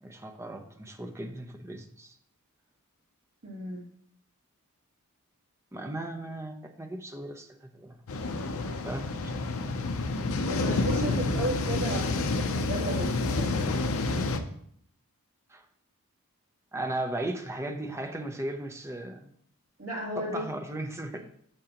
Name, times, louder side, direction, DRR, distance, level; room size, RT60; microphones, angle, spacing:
voice 1, 0.0-2.1 5.7-8.0 8.8-9.6 10.7-10.8 11.1-11.3 15.5-15.6 16.7-19.3 20.2-21.2, right 1 dB, 15° right, 4 dB, 0.7 m, -37 dB
voice 2, 3.4-3.8 10.5-12.3 12.6-13.8 19.8-20.4, right 1 dB, 70° right, -3 dB, 2.7 m, -34 dB
sound 1, 8.1-14.4, left 3 dB, 65° left, 0.7 m, -29 dB
8.7 x 6.7 x 2.9 m, 0.66 s
head